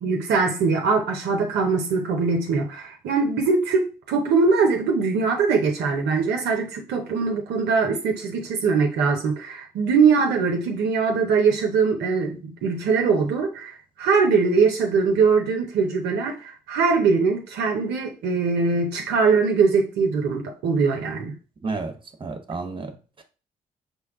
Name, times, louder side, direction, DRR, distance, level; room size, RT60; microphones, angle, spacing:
voice 1, 0.0-21.4, right 4 dB, 70° right, 0.7 m, -22 dB
voice 2, 21.6-21.9 22.2-23.2, right 3 dB, 30° right, 1.0 m, -31 dB
5.3 x 2.2 x 3.6 m
hypercardioid pair, 45°, 18 cm